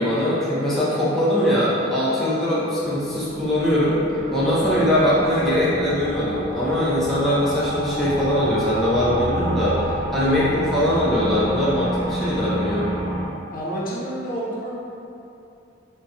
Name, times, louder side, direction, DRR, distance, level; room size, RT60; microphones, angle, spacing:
voice 1, 0.0-4.0 4.3-9.7 10.1-12.9, equal, ahead, -10 dB, 0.5 m, -21 dB
sound 1, 2.6-13.2, right 1 dB, 50° right, 0.6 m, -30 dB
voice 2, 13.5-14.7, right 1 dB, 45° left, -7 dB, 0.6 m, -29 dB
2.7 x 2.1 x 3.6 m, 2.7 s
head